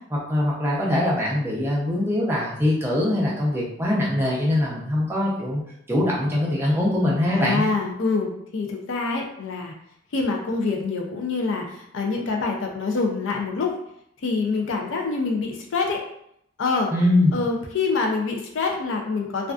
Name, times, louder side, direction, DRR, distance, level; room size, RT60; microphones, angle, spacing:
voice 1, 0.1-5.6 5.9-7.7 16.9-17.4, left 1 dB, 10° right, -5 dB, 0.5 m, -22 dB
voice 2, 7.3-9.7 10.1-13.7 14.2-16.0 16.6-16.9 17.3-19.5, left 4 dB, 70° left, 1 dB, 0.4 m, -26 dB
2.4 x 2.2 x 2.3 m, 0.72 s
head